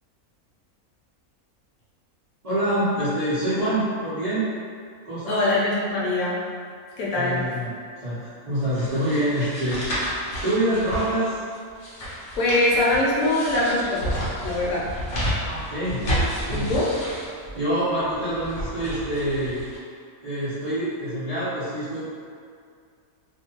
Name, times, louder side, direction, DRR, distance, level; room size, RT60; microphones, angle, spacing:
voice 1, 2.4-4.5 5.0-5.4 7.1-7.7 8.0-9.8 10.4-11.4 15.4-16.8 17.5-19.6 20.2-22.0, right 1 dB, 45° right, -15 dB, 0.5 m, -26 dB
voice 2, 5.3-6.4 7.0-7.4 12.4-14.2 14.4-14.9 16.5-16.9, left 2 dB, 75° left, -6 dB, 1.0 m, -23 dB
sound 1, 8.7-19.8, equal, 50° left, 0.7 m, -31 dB
2.5 x 2.2 x 2.8 m, 2.2 s
omnidirectional pair, 1.6 m